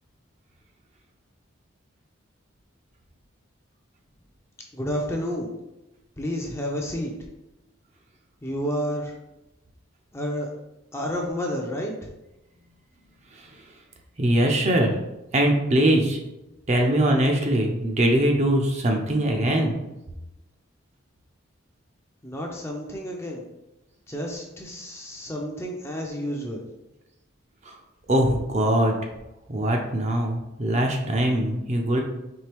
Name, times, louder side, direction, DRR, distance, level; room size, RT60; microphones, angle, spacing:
voice 1, 4.7-5.5 6.2-7.1 8.4-9.1 10.1-10.5 10.9-12.1 22.2-23.4 24.1-26.6, equal, 10° left, 0 dB, 0.5 m, -30 dB
voice 2, 14.2-15.0 15.3-16.2 16.7-19.7 27.6-27.8 28.1-29.0 29.5-32.0, right 1 dB, 35° right, 2 dB, 0.5 m, -22 dB
4.5 x 3.3 x 3.4 m, 0.96 s
head